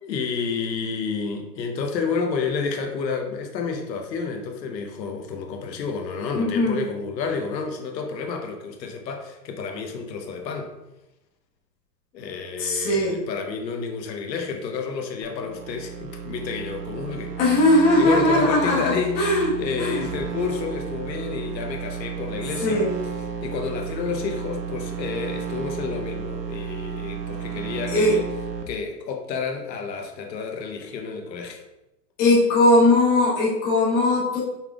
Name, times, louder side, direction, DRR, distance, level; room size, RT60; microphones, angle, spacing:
voice 1, 0.0-10.7 12.1-17.4 18.0-22.8 23.4-28.2 28.7-31.6, left 5 dB, 85° left, 3 dB, 0.9 m, -30 dB
voice 2, 6.3-6.8 12.6-13.2 17.4-19.5 19.8-20.0 22.6-22.9 27.9-28.1 32.2-34.4, left 2 dB, 20° left, -7 dB, 1.1 m, -19 dB
sound 1, 15.2-28.6, right 7 dB, 90° right, 1.0 m, -33 dB
5.6 x 3.6 x 2.3 m, 0.93 s
hypercardioid pair, 165°, 50 cm